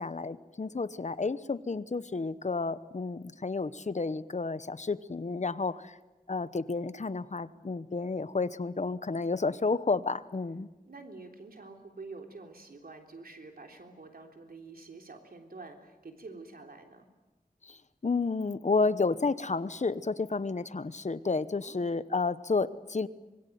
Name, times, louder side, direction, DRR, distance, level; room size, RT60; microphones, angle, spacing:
voice 1, 0.0-5.9 6.3-10.7 17.6-17.8 18.0-23.1, left 4 dB, 50° left, 15 dB, 1.0 m, -31 dB
voice 2, 10.9-17.1 21.6-21.9, right 3 dB, 80° right, 4 dB, 3.5 m, -47 dB
25.0 x 21.5 x 9.3 m, 1.1 s
wide cardioid pair, 70°, 15 cm